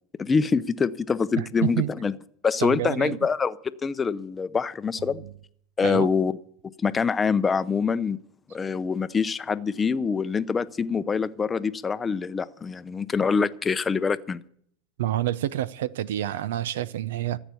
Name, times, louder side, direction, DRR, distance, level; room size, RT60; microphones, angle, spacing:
voice 1, 0.2-2.1 2.4-3.6 3.8-5.2 5.8-6.4 6.8-8.2 8.5-14.4, left 5 dB, 20° left, 0.6 m, -25 dB
voice 2, 1.4-1.9 2.6-3.2 5.2-5.3 5.8-6.1 15.0-17.4, right 13 dB, 85° right, 0.6 m, -28 dB
14.5 x 8.1 x 8.3 m
supercardioid pair, 125°, 0 cm